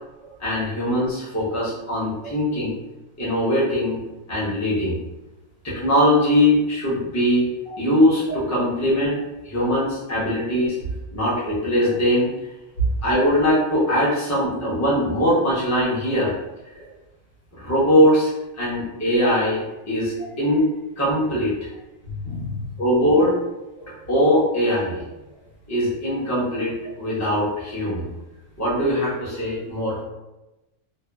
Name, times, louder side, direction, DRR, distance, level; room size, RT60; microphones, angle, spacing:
voice 1, 0.4-2.8 3.2-4.0 4.3-5.0 5.6-7.5 7.8-10.8 11.1-12.3 13.0-16.3 17.6-20.7 21.0-21.7 22.8-23.3 24.1-25.0 25.7-28.1 28.6-30.0, equal, 20° left, -8 dB, 0.6 m, -21 dB
voice 2, 22.0-22.7 23.8-24.0, right 3 dB, 50° left, -7 dB, 1.0 m, -29 dB
2.8 x 2.2 x 2.2 m, 1.0 s
omnidirectional pair, 1.3 m